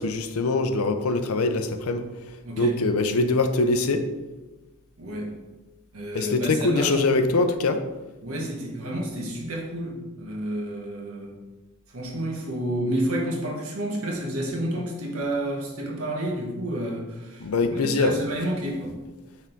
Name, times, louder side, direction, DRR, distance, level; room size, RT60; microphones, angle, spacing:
voice 1, 0.0-2.0 2.6-4.1 6.1-7.8 17.4-18.2, left 3 dB, 80° left, 8 dB, 0.6 m, -23 dB
voice 2, 2.4-2.8 5.0-5.3 5.9-7.0 8.2-11.4 11.9-19.0, right 1 dB, 80° right, -1 dB, 1.4 m, -30 dB
6.0 x 3.6 x 4.5 m, 1.1 s
head